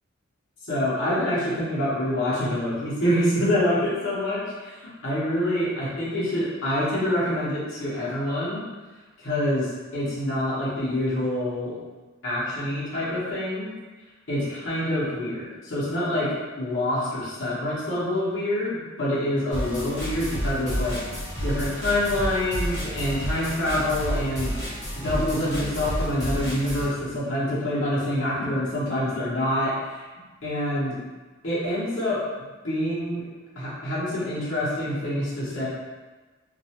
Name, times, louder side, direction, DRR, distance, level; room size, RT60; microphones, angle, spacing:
voice 1, 0.6-8.6 9.2-11.8 12.2-13.7 14.3-21.0 21.4-24.6 24.9-30.0 30.4-31.0 31.4-32.2 32.6-33.2 33.6-35.7, left 1 dB, 85° left, -9 dB, 0.9 m, -26 dB
sound 1, 19.5-26.9, equal, 40° left, 1.1 m, -30 dB
2.5 x 2.1 x 2.8 m, 1.3 s
head